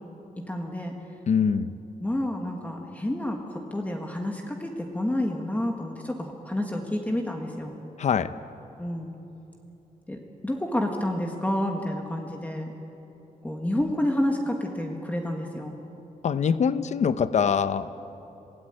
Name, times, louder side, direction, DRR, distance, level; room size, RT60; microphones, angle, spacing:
voice 1, 0.4-0.9 2.0-7.7 8.8-9.1 10.1-12.7 13.4-15.7, left 1 dB, 10° left, 2 dB, 1.7 m, -29 dB
voice 2, 1.3-1.7 8.0-8.3 16.2-17.9, left 7 dB, 50° left, 13 dB, 0.8 m, -23 dB
27.0 x 17.5 x 9.1 m, 3.0 s
wide cardioid pair, 165°, 15 cm